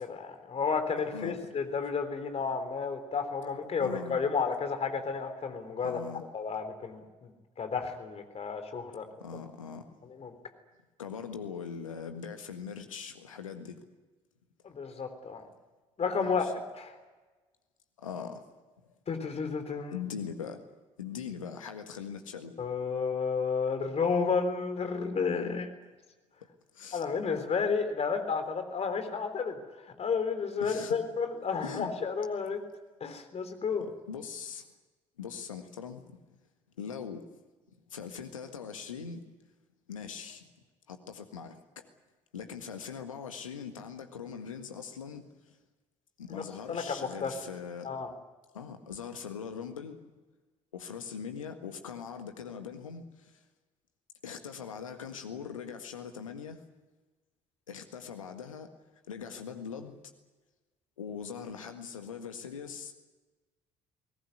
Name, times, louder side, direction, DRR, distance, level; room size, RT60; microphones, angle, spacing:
voice 1, 0.0-6.0 6.3-7.3 7.6-9.1 10.2-10.3 14.6-15.4 16.0-16.5 16.8-17.0 19.1-20.0 22.6-25.7 26.9-29.6 30.0-32.6 33.0-33.8 46.3-46.4 46.7-47.4 47.8-48.1, left 5 dB, 40° left, 8 dB, 3.6 m, -31 dB
voice 2, 3.8-4.2 5.8-6.2 9.2-9.8 11.0-13.8 16.2-16.5 18.0-18.5 19.9-20.6 21.0-22.5 26.7-27.0 30.6-31.0 31.6-31.9 33.8-34.7 35.2-36.2 36.8-37.3 37.9-39.2 39.9-40.4 40.9-41.9 42.3-45.3 46.2-47.9 48.5-50.0 50.7-53.4 54.2-56.6 57.7-58.7 59.1-60.1 61.0-62.9, left 7 dB, 80° left, 7 dB, 1.7 m, -41 dB
22.0 x 18.5 x 9.5 m, 1.2 s
figure-of-eight pair, 50°, 17 cm